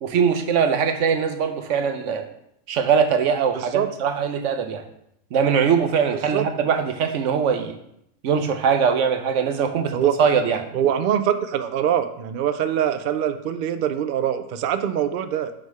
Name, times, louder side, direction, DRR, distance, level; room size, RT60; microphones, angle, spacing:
voice 1, 0.0-2.3 2.7-4.8 5.3-7.7 8.2-10.6, right 6 dB, 65° right, 7 dB, 1.0 m, -21 dB
voice 2, 3.5-3.9 6.1-6.7 9.9-10.1 10.7-15.5, right 9 dB, 80° right, 9 dB, 0.4 m, -24 dB
6.4 x 5.0 x 4.7 m, 0.77 s
omnidirectional pair, 1.5 m